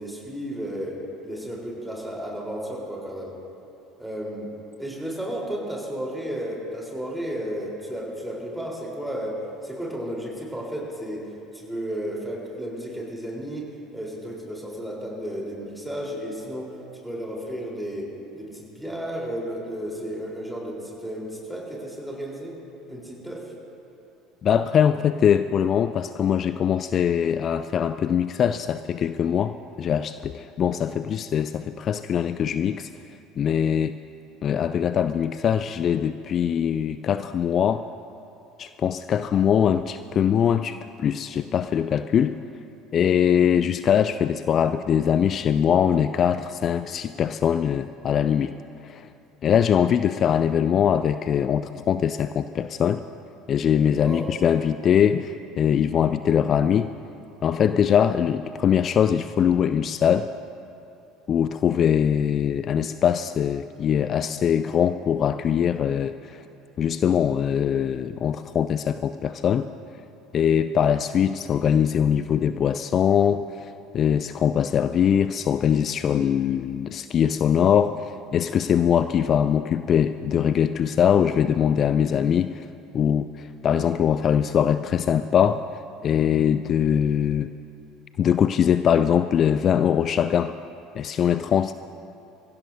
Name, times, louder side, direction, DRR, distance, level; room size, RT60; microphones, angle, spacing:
voice 1, 0.0-3.3 4.0-4.5 4.8-16.8 17.0-18.1 18.3-22.6 22.9-23.5 53.9-54.3, equal, 5° right, -3 dB, 3.9 m, -33 dB
voice 2, 24.4-32.9 33.4-33.9 34.4-37.9 38.6-42.4 42.9-48.6 48.8-49.1 49.4-53.0 53.5-56.9 57.4-60.3 61.3-66.4 66.8-69.7 70.3-82.7 82.9-85.7 86.0-87.5 88.2-90.6 90.9-91.7, left 8 dB, 40° left, 11 dB, 0.3 m, -22 dB
24.0 x 16.0 x 2.7 m, 2.8 s
figure-of-eight pair, 65°, 0 cm